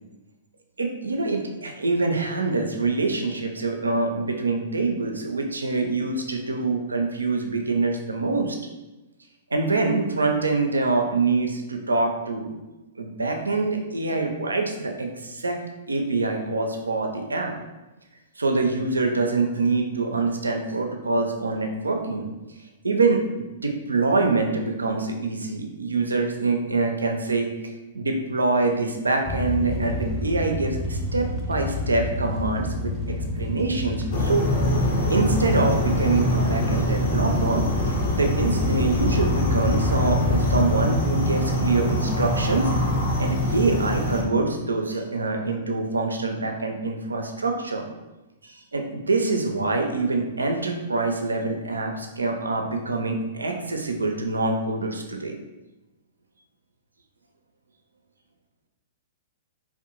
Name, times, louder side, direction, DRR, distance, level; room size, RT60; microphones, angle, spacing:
voice 1, 0.8-8.6 9.5-12.5 13.0-15.6 15.9-17.5 18.4-22.3 22.8-27.5 27.9-34.5 35.1-37.7 38.1-42.7 43.2-47.8 48.4-55.3, right 3 dB, 85° right, 3 dB, 0.4 m, -25 dB
sound 1, 29.2-40.7, left 3 dB, 10° left, 0.5 m, -28 dB
sound 2, 34.1-44.2, equal, 55° left, 0.7 m, -24 dB
2.6 x 2.0 x 2.8 m, 1.1 s
figure-of-eight pair, 110°, 0 cm